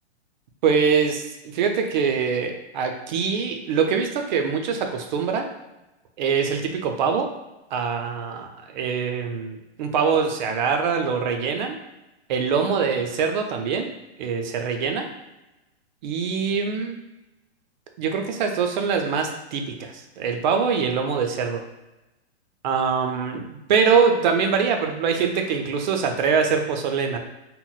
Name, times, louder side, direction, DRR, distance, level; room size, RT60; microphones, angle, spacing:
voice 1, 0.6-5.5 6.2-7.3 7.7-11.8 12.3-13.9 14.2-15.1 16.0-17.0 18.0-21.6 22.6-27.2, right 6 dB, 45° right, 4 dB, 0.4 m, -23 dB
3.9 x 2.0 x 2.3 m, 1.0 s
hypercardioid pair, 150°, 34 cm